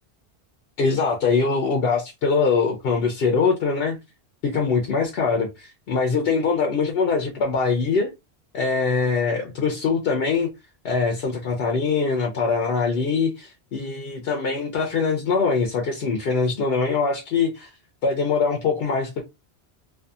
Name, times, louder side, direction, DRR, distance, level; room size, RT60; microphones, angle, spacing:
voice 1, 0.8-4.0 4.4-8.1 8.5-10.5 10.8-17.7 18.0-19.2, left 4 dB, 65° left, 0.8 m, -23 dB
2.6 x 2.5 x 2.3 m
omnidirectional pair, 1.1 m